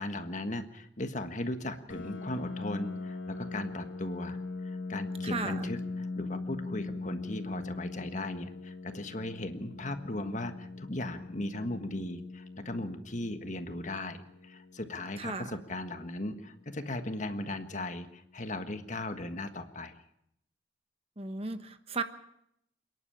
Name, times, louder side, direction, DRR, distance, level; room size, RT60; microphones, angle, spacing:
voice 1, 0.0-20.0, left 1 dB, 40° left, 8 dB, 1.5 m, -37 dB
Piano, 1.9-17.3, left 3 dB, 85° left, 1.6 m, -41 dB
voice 2, 5.2-5.7 15.2-15.6 21.2-22.0, right 4 dB, 30° right, 9 dB, 1.2 m, -35 dB
28.0 x 11.0 x 8.7 m, 0.75 s
head